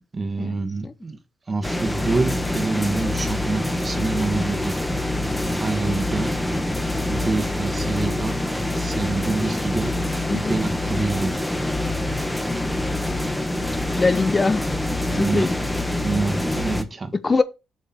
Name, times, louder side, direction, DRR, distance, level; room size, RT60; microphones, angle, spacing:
voice 1, 0.1-1.2 1.5-4.8 5.6-6.4 7.1-8.4 8.7-9.9 10.3-11.3 15.1-15.5 16.0-17.1, right 3 dB, 30° right, 1.4 m, -26 dB
sound 1, 1.6-16.8, left 1 dB, 5° left, 1.2 m, -25 dB
voice 2, 13.7-14.7 15.1-15.5 17.2-17.4, left 3 dB, 30° left, 0.6 m, -22 dB
7.8 x 5.3 x 4.3 m
cardioid pair, 90°, 0 cm